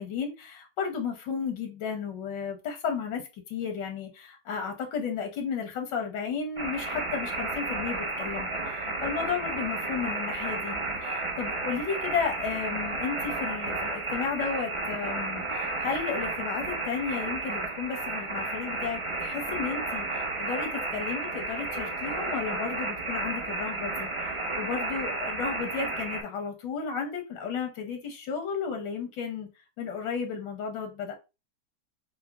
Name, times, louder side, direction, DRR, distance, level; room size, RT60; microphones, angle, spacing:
voice 1, 0.0-3.2 3.5-24.1 24.6-29.5 29.8-31.2, left 6 dB, 90° left, 1.5 m, -33 dB
sound 1, 6.6-26.2, right 2 dB, 45° right, 0.4 m, -32 dB
5.6 x 2.1 x 2.3 m
omnidirectional pair, 1.9 m